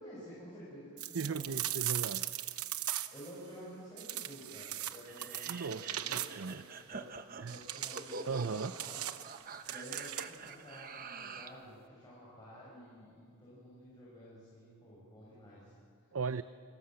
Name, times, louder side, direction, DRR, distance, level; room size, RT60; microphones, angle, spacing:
voice 1, 0.0-1.5 3.1-7.1 7.4-9.3 9.7-16.1, equal, 20° left, -8 dB, 6.4 m, -51 dB
sound 1, 1.0-3.3 4.0-6.6 7.5-10.5, right 13 dB, 90° right, 0.9 m, -39 dB
voice 2, 1.1-2.3 5.5-6.6 7.4-7.6 8.3-8.7 16.1-16.4, right 5 dB, 70° right, 13 dB, 0.5 m, -37 dB
sound 2, 5.1-11.6, right 4 dB, 40° right, 1.0 m, -46 dB
30.0 x 20.0 x 7.7 m, 2.3 s
head